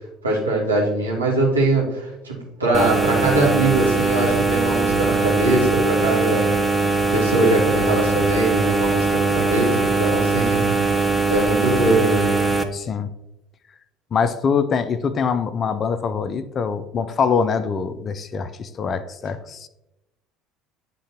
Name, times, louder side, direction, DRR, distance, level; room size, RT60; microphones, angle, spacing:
voice 1, 0.2-6.6 7.1-10.6 10.9-12.3, right 2 dB, 90° right, -4 dB, 1.6 m, -22 dB
sound 1, 2.7-12.6, right 3 dB, 10° right, 0.7 m, -21 dB
voice 2, 12.7-13.1 14.1-19.7, left 6 dB, 40° left, 12 dB, 0.5 m, -24 dB
9.8 x 3.8 x 2.9 m, 0.93 s
hypercardioid pair, 65°, 0 cm